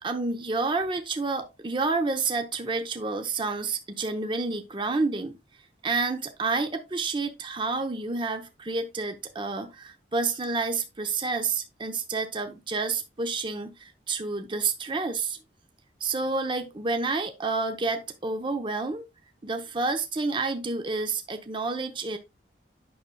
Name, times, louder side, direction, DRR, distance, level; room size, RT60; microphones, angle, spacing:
voice 1, 0.0-5.4 5.8-15.4 16.0-19.0 19.4-22.2, right 3 dB, 25° right, 0.7 m, -29 dB
9.3 x 6.1 x 2.2 m
head